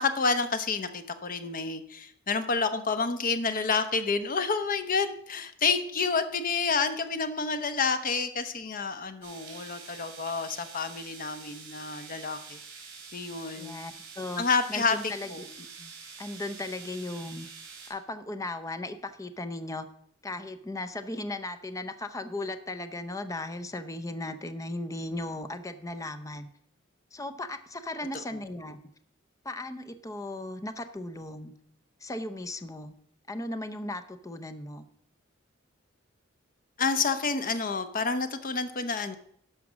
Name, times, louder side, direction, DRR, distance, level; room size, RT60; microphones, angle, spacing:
voice 1, 0.0-12.6 13.1-13.8 14.4-15.0 15.3-15.5 15.8-15.9 28.3-28.4 36.8-39.2, left 4 dB, 45° left, 10 dB, 0.9 m, -29 dB
sound 1, 9.2-17.9, right 5 dB, 60° right, 3.8 m, -46 dB
voice 2, 13.5-14.4 14.7-15.3 16.2-17.5 17.9-19.9 20.2-26.5 27.1-28.8 29.4-31.5 32.0-32.9 33.3-34.9, left 2 dB, 15° left, 9 dB, 0.6 m, -36 dB
12.0 x 5.1 x 6.1 m, 0.66 s
head